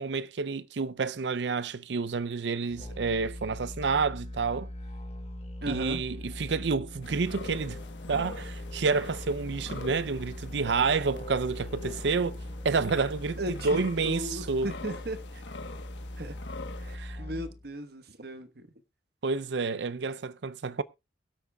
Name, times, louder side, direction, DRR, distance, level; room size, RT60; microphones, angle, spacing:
voice 1, 0.0-4.7 5.7-7.8 8.1-12.4 12.6-14.7 17.0-17.2 19.2-20.8, right 4 dB, 80° right, 0.6 m, -29 dB
Musical instrument, 2.7-17.7, left 1 dB, 35° left, 1.1 m, -41 dB
voice 2, 5.6-6.1 13.4-15.4 16.2-16.4 16.8-18.7, right 1 dB, 60° right, 1.2 m, -37 dB
sound 1, 7.0-17.0, left 3 dB, 85° left, 1.2 m, -45 dB
22.5 x 8.3 x 2.3 m
head